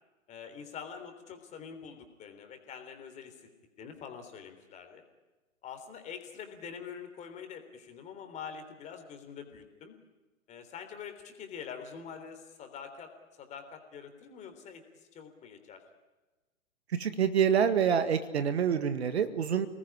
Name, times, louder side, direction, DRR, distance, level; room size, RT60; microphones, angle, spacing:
voice 1, 0.3-3.4 3.8-5.0 5.6-10.0 10.5-13.1 13.4-14.8 15.1-15.8, left 7 dB, 15° left, 6 dB, 3.5 m, -45 dB
voice 2, 16.9-19.7, right 7 dB, 50° right, 10 dB, 1.9 m, -27 dB
29.5 x 20.0 x 9.9 m, 1.2 s
figure-of-eight pair, 120°, 41 cm